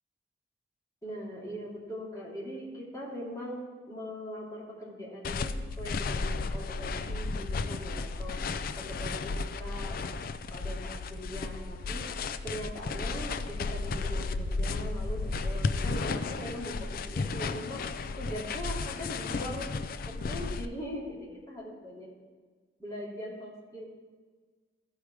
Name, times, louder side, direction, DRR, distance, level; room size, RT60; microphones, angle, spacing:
voice 1, 1.0-8.4 8.7-10.0 10.5-12.1 12.4-17.8 18.2-19.7 20.0-22.1 22.8-23.8, equal, 20° left, -6 dB, 2.4 m, -41 dB
sound 1, 5.2-20.7, left 3 dB, 50° left, 0.4 m, -33 dB
14.5 x 4.9 x 4.7 m, 1.5 s
head